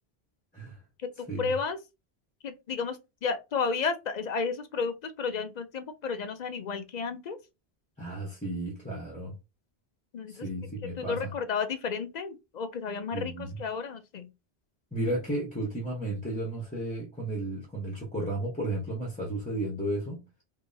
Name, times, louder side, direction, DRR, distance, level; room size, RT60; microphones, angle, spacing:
voice 1, 1.2-1.8 2.4-7.4 10.1-10.5 11.0-14.3, left 5 dB, 55° left, 0.5 m, -32 dB
voice 2, 8.0-9.3 10.3-11.3 13.1-13.5 14.9-20.2, right 1 dB, 10° left, 0.8 m, -33 dB
3.5 x 2.8 x 2.6 m
omnidirectional pair, 1.0 m